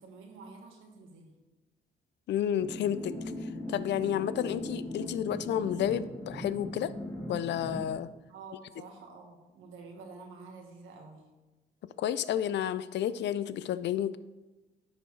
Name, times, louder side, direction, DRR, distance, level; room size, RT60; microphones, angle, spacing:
voice 1, 0.0-1.3 4.0-4.4 8.3-11.2, right 4 dB, 85° right, 2 dB, 1.4 m, -49 dB
voice 2, 2.3-3.1 3.7-6.9 7.3-8.1 12.0-14.2, left 10 dB, 65° left, 15 dB, 0.4 m, -31 dB
sound 1, 2.6-7.9, left 1 dB, 25° left, 2.6 m, -39 dB
10.0 x 4.5 x 3.2 m, 1.1 s
cardioid pair, 90°, 20 cm